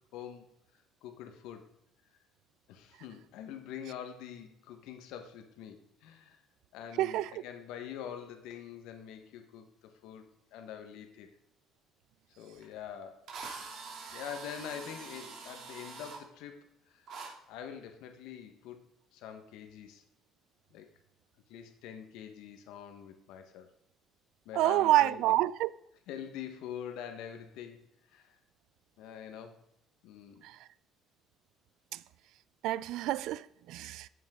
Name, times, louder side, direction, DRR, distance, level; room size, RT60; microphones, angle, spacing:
voice 1, 0.1-0.5 1.0-1.7 2.7-6.4 6.7-11.3 12.4-13.2 14.1-17.1 17.5-18.9 19.1-20.0 20.7-20.9 21.5-23.7 24.4-25.3 26.1-28.4 29.0-29.6 30.0-30.5, left 9 dB, 85° left, 1.3 m, -45 dB
voice 2, 7.0-7.3 24.5-25.7 32.6-34.1, right 15 dB, 75° right, 0.4 m, -27 dB
Drill, 12.6-12.7 13.3-16.2 17.1-17.3, right 4 dB, 50° right, 2.7 m, -44 dB
12.5 x 8.3 x 3.7 m
cardioid pair, 155°, 0 cm